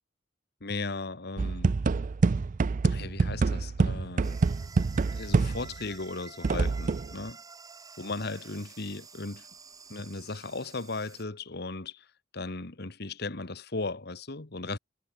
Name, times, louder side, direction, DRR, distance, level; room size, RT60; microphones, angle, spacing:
voice 1, 0.6-1.8 2.8-4.4 5.2-7.4 8.0-9.5 9.9-12.1 12.3-14.8, left 3 dB, 60° left, 1.6 m, -36 dB
sound 1, 1.4-5.9 6.4-7.1, right 4 dB, 45° right, 0.4 m, -26 dB
sound 2, 4.2-11.2, right 4 dB, 20° right, 1.2 m, -50 dB
head